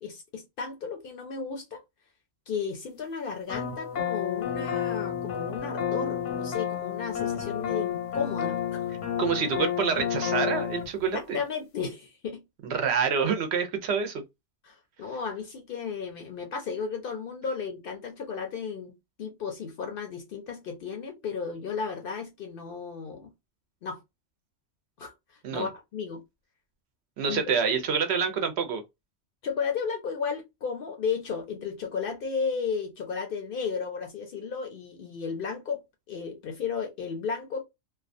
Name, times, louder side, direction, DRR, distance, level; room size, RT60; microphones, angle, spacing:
voice 1, 0.0-1.8 2.5-8.9 11.1-12.4 14.6-18.9 19.2-23.3 23.8-24.0 25.0-25.1 25.5-26.2 27.3-27.4 29.4-35.8 36.1-37.6, left 5 dB, 60° left, 0.6 m, -34 dB
sound 1, 3.5-10.9, left 9 dB, 85° left, 1.0 m, -30 dB
voice 2, 9.2-11.4 12.6-14.2 25.4-25.7 27.2-28.8, right 6 dB, 70° right, 0.8 m, -27 dB
2.4 x 2.3 x 2.5 m
omnidirectional pair, 1.2 m